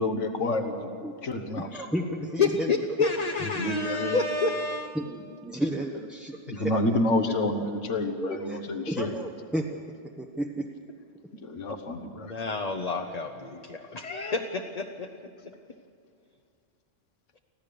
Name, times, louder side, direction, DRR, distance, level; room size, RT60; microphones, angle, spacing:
voice 1, 0.0-0.9 1.2-1.8 3.6-4.2 6.5-9.1 11.4-12.3, left 2 dB, 75° left, 7 dB, 1.6 m, -29 dB
voice 2, 1.6-2.7 5.0-6.7 7.3-7.4 8.2-9.7 10.2-10.7, right 1 dB, ahead, -1 dB, 0.9 m, -32 dB
voice 3, 2.4-5.0 5.9-6.0 12.1-15.1 15.4-15.5, left 4 dB, 35° left, 4 dB, 0.9 m, -29 dB
25.0 x 15.5 x 6.9 m, 2.4 s
omnidirectional pair, 1.3 m